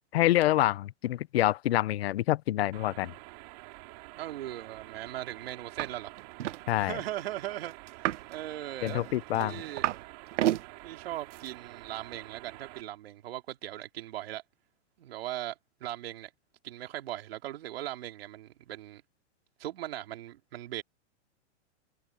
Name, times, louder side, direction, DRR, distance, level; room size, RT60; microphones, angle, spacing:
voice 1, 0.1-3.1 6.7-7.0 8.8-9.6, left 14 dB, 60° left, 0.7 m, -27 dB
sound 1, 2.7-12.8, right 24 dB, 35° right, 4.8 m, -48 dB
voice 2, 4.1-6.1 6.8-9.0 9.3-9.9 10.8-14.4 15.0-16.3 16.6-19.0 19.6-20.8, right 13 dB, 55° right, 2.9 m, -39 dB
sound 2, 5.8-5.9 6.2-6.6 7.9-8.3 8.9-10.0 10.3-10.6 11.3-11.5, right 13 dB, 80° right, 0.8 m, -30 dB
supercardioid pair, 175°, 35 cm